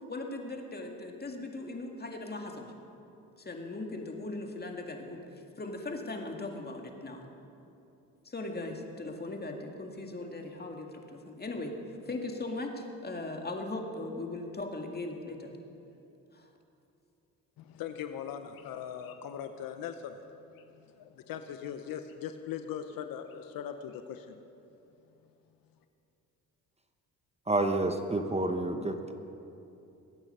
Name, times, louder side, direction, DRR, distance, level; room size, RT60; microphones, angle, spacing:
voice 1, 0.1-2.7 3.4-5.2 5.6-7.2 8.3-11.8 12.1-15.5 16.3-16.5, left 2 dB, 30° left, 2 dB, 2.0 m, -39 dB
voice 2, 17.6-20.2 20.5-24.4, left 9 dB, 80° left, 8 dB, 0.8 m, -40 dB
voice 3, 27.5-29.1, right 2 dB, 20° right, 6 dB, 1.0 m, -29 dB
21.0 x 8.9 x 5.5 m, 2.8 s
cardioid pair, 70°, 34 cm